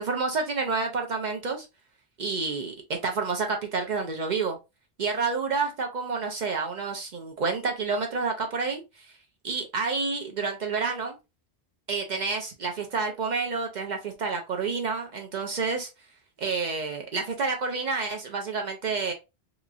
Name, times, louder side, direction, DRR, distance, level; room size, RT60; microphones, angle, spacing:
voice 1, 0.0-1.7 2.2-2.7 3.0-4.6 5.0-8.8 9.4-11.2 11.9-15.9 16.4-19.1, right 4 dB, 55° right, 0.6 m, -29 dB
2.9 x 2.4 x 2.5 m
omnidirectional pair, 1.1 m